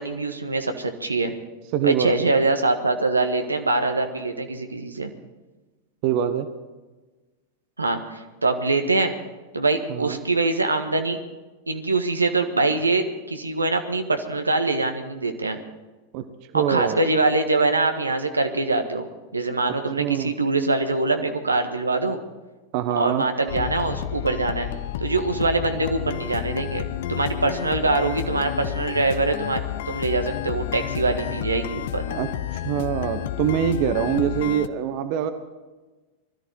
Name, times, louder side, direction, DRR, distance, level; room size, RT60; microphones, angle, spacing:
voice 1, 0.0-1.3 1.8-5.1 7.8-9.1 9.5-11.2 11.7-15.6 16.5-19.1 19.3-22.2 22.9-24.7 25.0-26.8 27.1-29.6 29.8-32.1, right 3 dB, 80° right, 6 dB, 1.5 m, -23 dB
voice 2, 1.7-2.3 6.0-6.5 9.9-10.2 16.1-16.2 16.5-17.0 20.0-20.3 22.7-23.2 32.1-32.3 32.6-35.3, right 10 dB, 45° right, 10 dB, 1.2 m, -24 dB
sound 1, 23.5-34.7, left 12 dB, 55° left, 0.8 m, -30 dB
21.0 x 14.0 x 4.8 m, 1.2 s
figure-of-eight pair, 90°, 0 cm